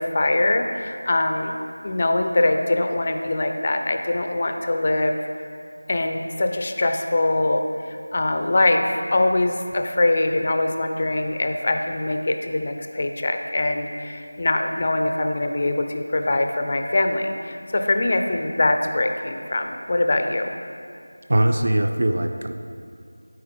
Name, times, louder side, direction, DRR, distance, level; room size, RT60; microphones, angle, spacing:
voice 1, 0.0-1.5 1.8-5.2 5.9-20.5, left 2 dB, 35° left, 5 dB, 0.5 m, -23 dB
voice 2, 21.3-22.5, right 1 dB, 55° right, 6 dB, 0.4 m, -21 dB
12.0 x 4.4 x 3.7 m, 2.4 s
figure-of-eight pair, 170°, 0 cm